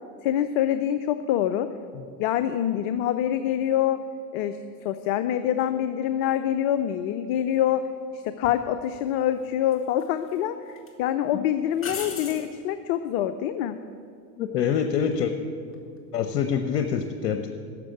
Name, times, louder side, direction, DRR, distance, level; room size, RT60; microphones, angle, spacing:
voice 1, 0.2-1.7 2.2-4.0 4.3-4.6 4.8-7.8 8.1-13.8, left 11 dB, 50° left, 10 dB, 0.7 m, -25 dB
sound 1, 8.4-8.6 9.7-10.4 10.8-10.9 11.8-12.5 15.6-16.0, left 5 dB, 25° left, 2.0 m, -37 dB
voice 2, 14.4-15.3 16.1-17.5, left 7 dB, 75° left, 7 dB, 1.0 m, -26 dB
12.0 x 7.4 x 9.3 m, 2.4 s
hypercardioid pair, 105°, 49 cm